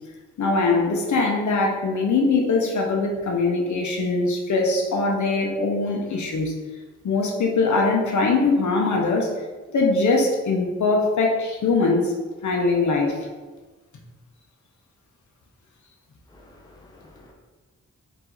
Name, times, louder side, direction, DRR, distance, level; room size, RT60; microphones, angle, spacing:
voice 1, 0.4-6.5 7.0-9.3 9.7-12.1 12.4-13.2, left 3 dB, 75° left, 0 dB, 0.7 m, -22 dB
voice 2, 16.3-17.3, left 2 dB, 15° left, -2 dB, 0.7 m, -50 dB
4.8 x 2.7 x 3.8 m, 1.3 s
wide cardioid pair, 145°, 30 cm